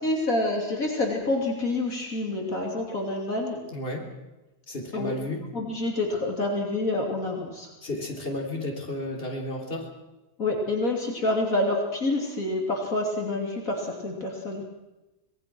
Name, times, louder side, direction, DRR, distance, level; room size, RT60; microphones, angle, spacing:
voice 1, 0.0-3.6 4.9-5.1 5.5-7.7 10.4-14.6, left 2 dB, 60° left, 0 dB, 3.4 m, -27 dB
voice 2, 3.7-4.1 4.7-5.5 7.8-9.9, left 1 dB, 35° left, 1 dB, 3.7 m, -32 dB
25.5 x 19.5 x 6.1 m, 1.0 s
omnidirectional pair, 1.7 m